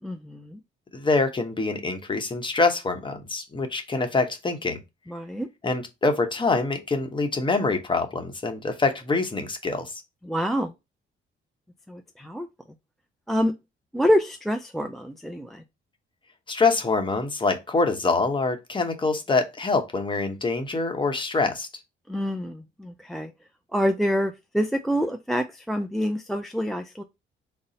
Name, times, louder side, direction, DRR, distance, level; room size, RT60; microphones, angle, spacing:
voice 1, 0.0-0.6 5.1-5.5 10.3-10.7 11.9-12.5 13.3-13.5 13.9-15.6 22.1-23.3 23.7-27.0, equal, ahead, 0.3 m, -26 dB
voice 2, 0.9-4.8 5.6-10.0 16.5-21.7, left 3 dB, 25° left, 0.8 m, -25 dB
4.0 x 2.0 x 3.8 m
cardioid pair, 90°, 20 cm